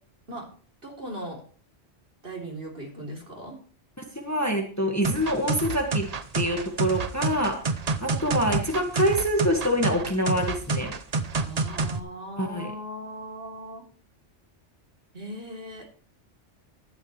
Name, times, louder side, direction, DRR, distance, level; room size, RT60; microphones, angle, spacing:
voice 1, 0.8-1.4 2.2-3.6 11.4-13.8 15.1-15.9, right 1 dB, 55° right, -1 dB, 3.7 m, -38 dB
voice 2, 4.0-6.1 6.3-10.9 12.4-12.7, equal, 15° left, 2 dB, 1.7 m, -26 dB
sound 1, 5.0-12.0, right 4 dB, 40° right, 0.8 m, -28 dB
13.5 x 11.5 x 3.3 m, 0.41 s
omnidirectional pair, 1.2 m